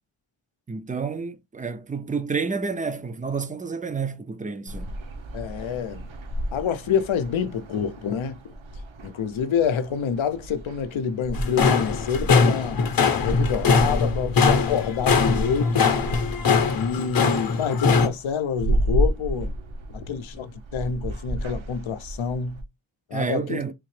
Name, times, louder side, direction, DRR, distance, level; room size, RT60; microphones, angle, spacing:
voice 1, 0.7-5.0 23.1-23.7, right 5 dB, 20° right, 0.3 m, -29 dB
sound 1, 4.7-22.6, right 1 dB, 80° right, 0.9 m, -32 dB
voice 2, 5.3-6.1 6.5-8.4 9.0-12.8 13.2-15.9 16.7-19.5 19.9-22.6 23.1-23.6, left 7 dB, 90° left, 0.6 m, -27 dB
sound 2, 11.3-18.1, left 5 dB, 50° left, 0.7 m, -21 dB
3.8 x 2.8 x 3.1 m
wide cardioid pair, 115°, 46 cm